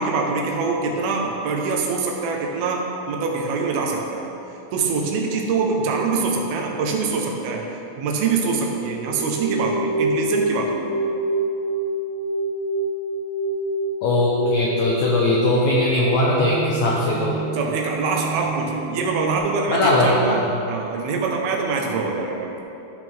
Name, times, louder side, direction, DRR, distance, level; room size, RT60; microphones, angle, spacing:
voice 1, 0.0-4.3 4.7-7.6 7.9-10.9 17.5-22.6, right 4 dB, 80° right, 0 dB, 2.8 m, -24 dB
sound 1, 9.0-19.4, right 2 dB, 50° right, 2.1 m, -27 dB
voice 2, 14.0-17.3 19.7-20.4, left 2 dB, 80° left, -3 dB, 1.6 m, -19 dB
13.5 x 6.2 x 3.5 m, 2.8 s
omnidirectional pair, 4.3 m